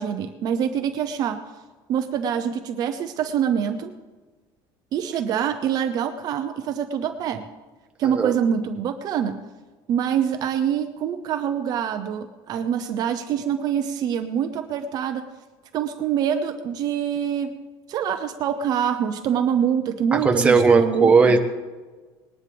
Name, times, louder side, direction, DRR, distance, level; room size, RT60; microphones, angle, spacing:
voice 1, 0.0-1.4 1.9-3.9 4.9-7.5 8.0-9.4 9.9-15.2 15.7-17.5 17.9-21.4, right 8 dB, 40° right, 7 dB, 0.7 m, -25 dB
voice 2, 8.0-8.4 20.1-21.4, right 4 dB, 10° right, 3 dB, 1.0 m, -17 dB
20.0 x 11.0 x 3.4 m, 1.3 s
cardioid pair, 165°, 10 cm